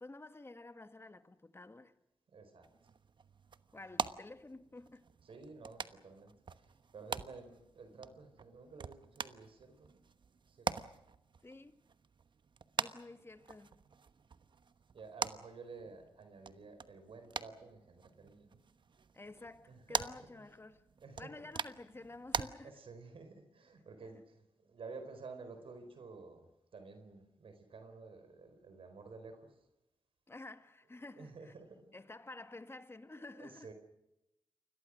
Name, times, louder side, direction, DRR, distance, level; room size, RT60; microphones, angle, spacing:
voice 1, 0.0-1.9 3.7-5.0 11.4-11.8 12.8-13.8 19.1-20.8 21.2-22.8 24.0-24.1 30.3-31.5 31.9-33.7, left 2 dB, 25° left, 1.8 m, -51 dB
voice 2, 2.3-2.7 5.2-9.9 10.5-10.7 14.9-18.6 19.7-20.0 21.0-21.5 22.6-29.6 31.1-31.8 33.4-33.7, right 4 dB, 75° right, 4.4 m, -52 dB
sound 1, 2.6-22.5, right 5 dB, 55° right, 1.1 m, -44 dB
29.0 x 22.0 x 6.4 m
cardioid pair, 75°, 9 cm